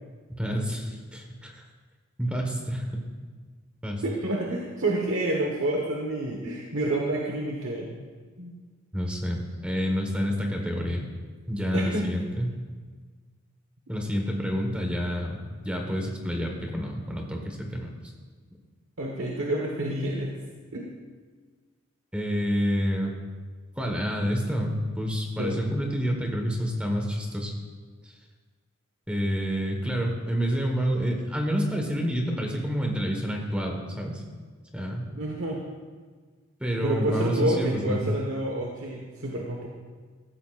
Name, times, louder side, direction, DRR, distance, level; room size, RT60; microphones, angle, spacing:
voice 1, 0.4-1.6 2.2-3.0 3.8-4.0 8.9-11.0 11.5-12.6 13.9-17.9 22.1-23.1 23.8-27.5 28.0-28.1 29.1-34.2 34.7-35.1 36.6-38.0, equal, 5° right, 1 dB, 1.5 m, -28 dB
voice 2, 4.0-7.9 8.4-8.5 11.7-12.0 19.0-20.3 20.7-20.9 25.4-25.6 35.2-35.6 36.8-39.7, right 1 dB, 70° right, -1 dB, 1.4 m, -28 dB
15.5 x 14.0 x 2.6 m, 1.5 s
head